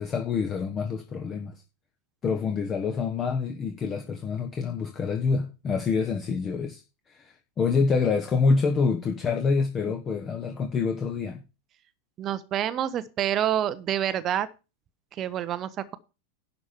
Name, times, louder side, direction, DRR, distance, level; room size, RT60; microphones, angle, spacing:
voice 1, 0.0-1.5 2.2-11.4, left 5 dB, 25° left, 6 dB, 1.3 m, -27 dB
voice 2, 12.2-14.5 15.1-16.0, right 10 dB, 30° right, 13 dB, 0.8 m, -27 dB
11.0 x 5.1 x 7.1 m, 0.30 s
figure-of-eight pair, 90°, 0 cm